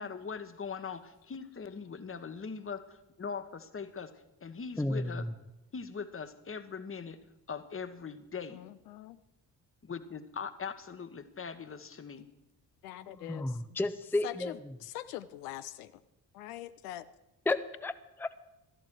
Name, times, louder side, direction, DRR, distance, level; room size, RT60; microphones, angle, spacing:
voice 1, 0.0-4.1 4.4-5.3 5.7-7.2 7.5-8.6 9.8-12.3, left 5 dB, 25° left, 11 dB, 1.2 m, -41 dB
voice 2, 4.8-5.3 13.1-14.5 17.5-17.9 18.2-18.5, left 2 dB, 5° left, 11 dB, 0.7 m, -32 dB
voice 3, 8.5-9.2 12.8-13.6 14.2-16.0 16.3-17.0, left 14 dB, 75° left, 12 dB, 0.7 m, -43 dB
13.0 x 11.0 x 6.3 m, 0.94 s
figure-of-eight pair, 45°, 47 cm